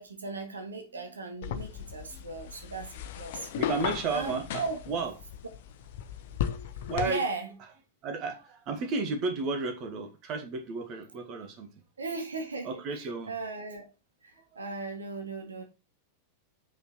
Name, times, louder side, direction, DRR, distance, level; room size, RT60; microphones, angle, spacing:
voice 1, 0.0-2.9 3.1-3.5 4.1-4.8 7.0-7.5 12.0-12.8 13.3-13.9 14.2-15.6, right 3 dB, 75° right, 1.6 m, -37 dB
sound 1, 1.4-7.1, left 10 dB, 55° left, 0.8 m, -36 dB
voice 2, 3.6-5.1 6.9-7.2 8.0-11.7 12.6-13.3 14.4-14.6, right 4 dB, 35° right, 2.0 m, -33 dB
7.6 x 5.5 x 4.5 m
figure-of-eight pair, 90°, 0 cm